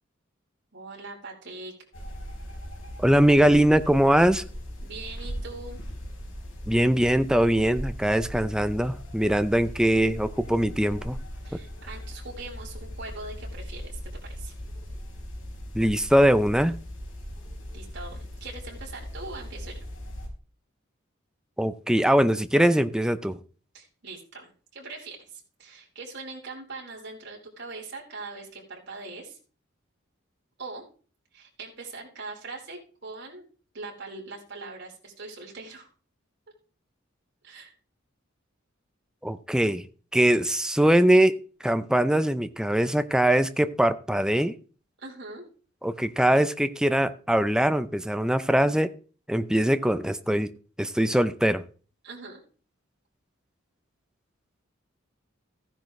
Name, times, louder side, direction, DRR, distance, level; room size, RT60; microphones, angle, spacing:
voice 1, 0.7-1.7 4.8-5.8 11.4-14.5 17.7-19.8 23.7-29.4 30.6-30.8 31.3-33.4 33.7-35.9 37.4-37.7 45.0-45.4 52.0-52.4, right 3 dB, 60° right, 4.6 m, -41 dB
sound 1, 1.9-20.3, equal, 65° left, 4.8 m, -39 dB
voice 2, 3.0-4.4 6.7-11.2 15.7-16.8 21.6-23.4 39.2-39.8 40.1-41.4 41.6-44.6 45.8-48.9 49.3-50.5 50.8-51.6, right 1 dB, 5° right, 0.6 m, -22 dB
15.0 x 10.5 x 3.3 m
head